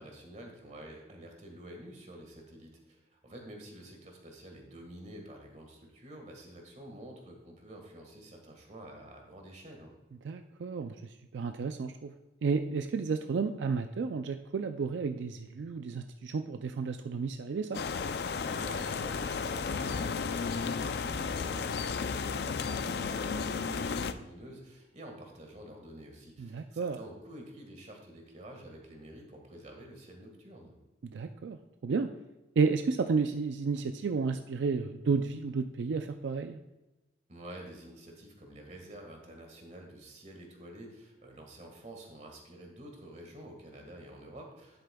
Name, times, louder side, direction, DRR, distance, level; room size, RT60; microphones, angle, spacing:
voice 1, 0.0-9.9 18.5-30.8 37.3-44.8, right 1 dB, 40° right, 2 dB, 1.6 m, -49 dB
voice 2, 10.2-12.1 12.4-17.8 26.4-27.0 31.0-32.1 32.6-36.6, right 5 dB, 80° right, 7 dB, 0.4 m, -32 dB
sound 1, 17.7-24.1, left 5 dB, 60° left, 0.4 m, -33 dB
10.0 x 8.0 x 2.3 m, 1.1 s
head